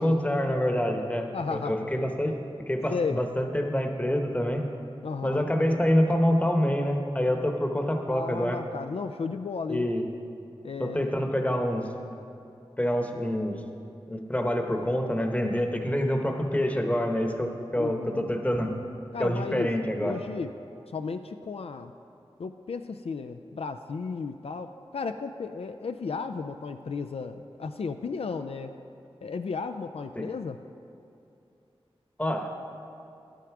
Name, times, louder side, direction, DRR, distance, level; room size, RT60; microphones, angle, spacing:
voice 1, 0.0-2.4 2.7-4.6 5.2-8.6 9.7-10.0 10.8-11.9 12.8-13.6 14.1-18.7 19.2-20.2 30.1-30.3 32.2-32.5, equal, 15° left, 4 dB, 1.0 m, -26 dB
voice 2, 1.3-1.9 2.9-3.2 5.0-5.5 8.1-9.9 10.6-11.1 17.8-18.4 19.1-19.7 20.0-20.6 20.9-21.9 22.4-28.8 29.2-30.6, left 4 dB, 70° left, 8 dB, 0.4 m, -34 dB
11.5 x 9.2 x 4.7 m, 2.7 s
wide cardioid pair, 85°, 10 cm